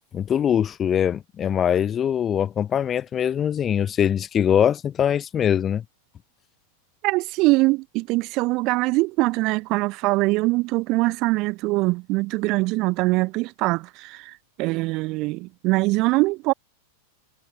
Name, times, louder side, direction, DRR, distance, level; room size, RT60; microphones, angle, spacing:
voice 1, 0.1-5.8, left 9 dB, 25° left, 1.3 m, -22 dB
voice 2, 7.0-14.3 14.6-16.5, right 22 dB, 40° right, 1.2 m, -22 dB
figure-of-eight pair, 90°, 0 cm